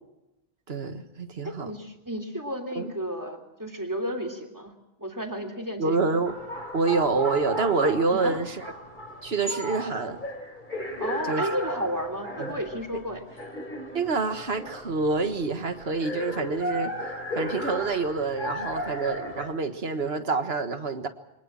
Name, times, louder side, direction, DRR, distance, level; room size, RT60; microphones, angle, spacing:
voice 1, 0.7-1.7 2.8-2.9 5.8-6.3 6.7-8.6 9.2-10.2 11.3-11.5 12.4-12.6 13.9-17.0 17.4-21.1, right 3 dB, 75° right, 8 dB, 1.8 m, -27 dB
voice 2, 1.6-4.7 5.0-6.0 8.1-8.4 11.0-13.2, equal, 20° right, 6 dB, 3.0 m, -32 dB
sound 1, 6.2-19.5, equal, 50° left, 4.0 m, -35 dB
24.0 x 20.0 x 7.6 m, 0.96 s
omnidirectional pair, 1.1 m